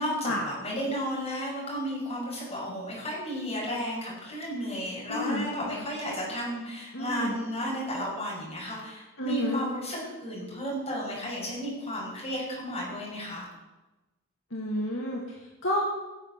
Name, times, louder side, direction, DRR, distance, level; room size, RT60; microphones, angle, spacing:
voice 1, 0.0-13.5, equal, 25° left, -4 dB, 5.6 m, -33 dB
voice 2, 5.1-5.5 6.9-7.4 9.2-9.6 14.5-15.8, left 1 dB, 60° left, -2 dB, 2.1 m, -30 dB
17.0 x 7.1 x 6.6 m, 1.1 s
head